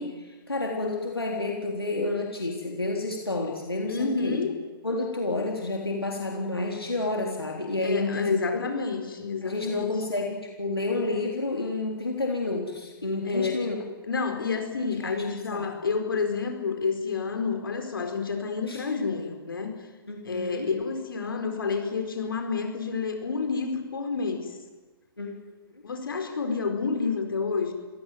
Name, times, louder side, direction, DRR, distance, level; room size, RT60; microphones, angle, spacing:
voice 1, 0.0-4.4 4.8-8.6 9.4-13.8 15.0-15.7 18.7-18.8 20.1-20.7 25.2-25.3, left 2 dB, 80° left, 0 dB, 3.8 m, -30 dB
voice 2, 3.9-4.5 7.8-9.9 13.2-13.6 14.0-19.7 20.2-24.6 25.8-27.7, left 4 dB, 65° left, 5 dB, 4.5 m, -29 dB
26.0 x 17.5 x 9.4 m, 1.3 s
figure-of-eight pair, 120°, 12 cm